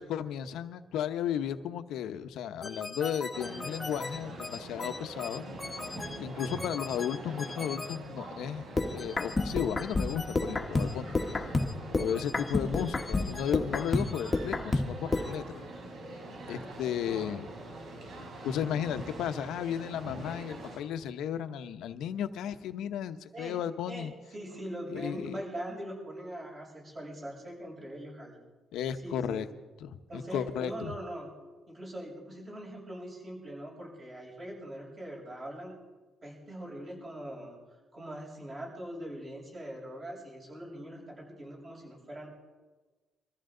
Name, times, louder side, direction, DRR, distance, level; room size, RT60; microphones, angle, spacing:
voice 1, 0.0-5.4 6.2-8.6 8.9-11.2 12.0-15.7 16.5-17.5 18.4-24.1 24.9-25.4 28.7-29.5 29.8-30.9, left 9 dB, 85° left, 10 dB, 0.9 m, -34 dB
sound 1, 2.6-8.0 8.8-15.4, left 2 dB, 20° left, 1.3 m, -32 dB
sound 2, 3.3-20.8, right 1 dB, 60° right, 4.4 m, -44 dB
voice 2, 23.9-28.4 29.0-29.5 30.1-31.3 31.7-35.8 36.2-37.6 37.9-42.3, right 1 dB, 30° right, -3 dB, 7.1 m, -42 dB
25.0 x 14.5 x 3.9 m, 1.3 s
cardioid pair, 145°, 0 cm